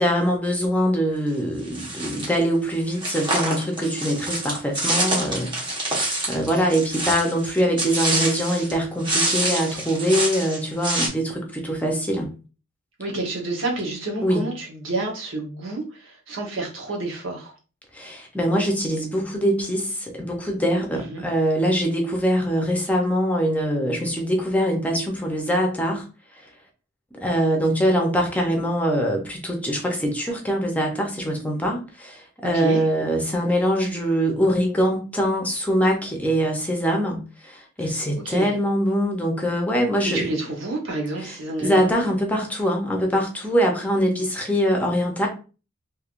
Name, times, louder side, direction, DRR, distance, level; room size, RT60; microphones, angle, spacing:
voice 1, 0.0-5.5 5.8-12.3 14.2-14.5 17.9-26.0 27.2-40.3 41.2-45.3, equal, 10° left, 0.7 m, -23 dB
sound 1, 1.7-2.4 3.0-8.7 9.0-11.1, right 2 dB, 25° right, 1.1 m, -26 dB
voice 2, 13.0-17.5 20.9-21.2 32.4-32.8 37.8-37.9 38.2-38.5 40.0-42.0, right 2 dB, 80° right, 1.1 m, -29 dB
3.2 x 2.8 x 2.5 m
head